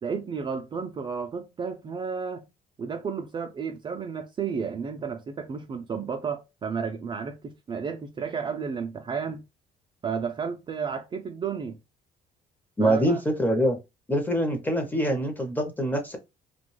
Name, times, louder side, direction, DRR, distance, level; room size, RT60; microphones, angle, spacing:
voice 1, 0.0-2.5 2.8-9.4 10.0-11.8 12.8-13.2, right 6 dB, 30° right, 0.3 m, -32 dB
voice 2, 12.8-13.8 14.1-16.2, right 1 dB, 10° left, 0.7 m, -24 dB
2.3 x 2.2 x 3.1 m
cardioid pair, 110°, 17 cm